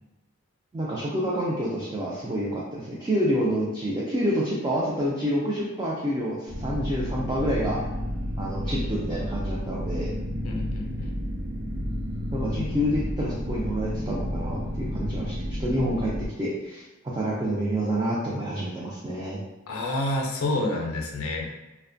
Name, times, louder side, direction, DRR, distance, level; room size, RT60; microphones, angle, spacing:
voice 1, 0.7-7.8 8.4-10.1 12.3-16.8 17.1-19.4, equal, 20° right, -6 dB, 0.3 m, -28 dB
sound 1, 6.5-16.3, equal, 45° right, 0.7 m, -31 dB
voice 2, 10.4-11.1 12.6-12.8 19.7-21.5, left 2 dB, 70° left, 1 dB, 0.4 m, -29 dB
2.4 x 2.1 x 2.5 m, 1.0 s
head